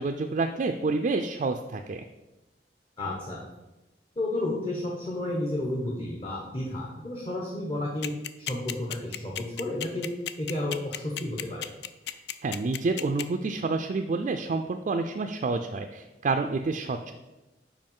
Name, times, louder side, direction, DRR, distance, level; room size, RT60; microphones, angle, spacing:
voice 1, 0.0-2.0 12.4-17.1, right 3 dB, 45° right, 5 dB, 0.3 m, -28 dB
voice 2, 3.0-3.4 4.2-10.1 10.4-11.7, left 1 dB, 30° left, -3 dB, 0.9 m, -32 dB
sound 1, 8.0-13.2, left 10 dB, 65° left, 0.4 m, -33 dB
5.4 x 4.9 x 5.4 m, 1.0 s
head